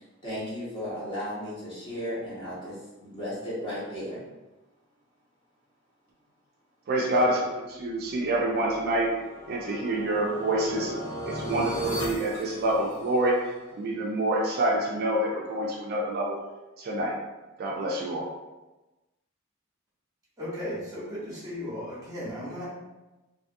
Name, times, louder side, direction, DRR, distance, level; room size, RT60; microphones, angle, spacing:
voice 1, 0.2-4.2, equal, 25° left, -9 dB, 1.1 m, -35 dB
voice 2, 6.9-9.1 9.5-10.9 11.3-13.4 13.8-16.4 16.8-17.1 17.6-18.3, right 1 dB, 50° right, -2 dB, 0.4 m, -27 dB
sound 1, 8.2-13.4, equal, 90° left, 0.6 m, -37 dB
voice 3, 20.4-22.7, left 1 dB, 20° right, -8 dB, 0.9 m, -35 dB
2.5 x 2.4 x 2.5 m, 1.1 s
head